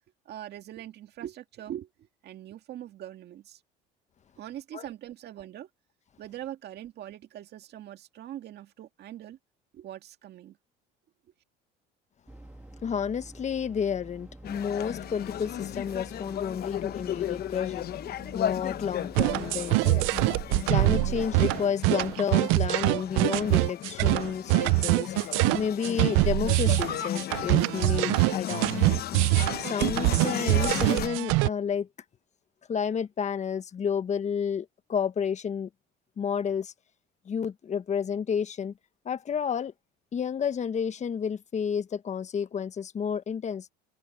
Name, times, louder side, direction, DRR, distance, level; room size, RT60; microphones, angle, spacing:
voice 1, 0.3-3.6 4.4-5.7 6.2-9.4 9.7-10.6, right 12 dB, 55° right, 2.1 m, -42 dB
sound 1, 12.3-20.7, right 1 dB, 5° right, 2.3 m, -48 dB
voice 2, 12.8-17.9 18.3-20.1 20.7-29.1 29.6-31.9 32.7-35.7 36.2-36.7 37.3-38.7 39.0-39.7 40.1-43.7, left 7 dB, 35° left, 1.3 m, -31 dB
sound 2, 14.4-31.1, left 11 dB, 50° left, 0.9 m, -35 dB
sound 3, 19.2-31.5, right 26 dB, 80° right, 0.5 m, -24 dB
supercardioid pair, 100°, 20 cm